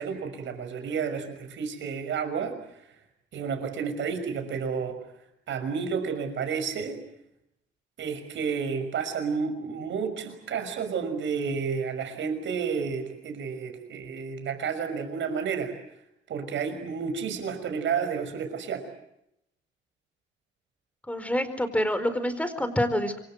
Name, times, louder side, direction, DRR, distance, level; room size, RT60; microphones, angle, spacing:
voice 1, 0.0-2.6 3.3-5.0 5.5-7.0 8.0-15.7 16.3-18.9, right 6 dB, 70° right, 7 dB, 6.1 m, -31 dB
voice 2, 21.1-23.2, left 1 dB, 5° left, 11 dB, 4.5 m, -27 dB
27.0 x 23.5 x 8.0 m, 0.79 s
cardioid pair, 90°, 20 cm